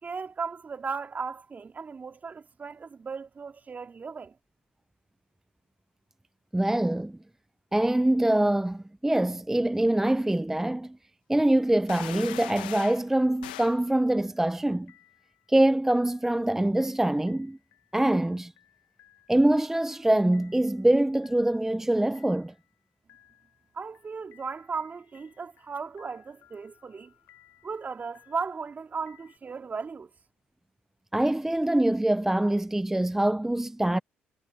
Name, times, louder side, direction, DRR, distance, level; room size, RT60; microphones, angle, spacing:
voice 1, 0.0-4.3 23.7-27.1 27.6-30.1, right 5 dB, 35° right, 3.6 m, -36 dB
voice 2, 6.5-7.2 7.7-11.0 11.3-14.9 15.5-17.6 17.9-18.5 19.3-22.5 31.1-34.0, right 1 dB, 10° right, 0.4 m, -24 dB
sound 1, 11.9-13.0 13.4-13.8, left 16 dB, 90° left, 1.2 m, -40 dB
sound 2, 14.2-14.6 14.9-29.4, left 14 dB, 70° left, 6.0 m, -62 dB
hypercardioid pair, 55°, 5 cm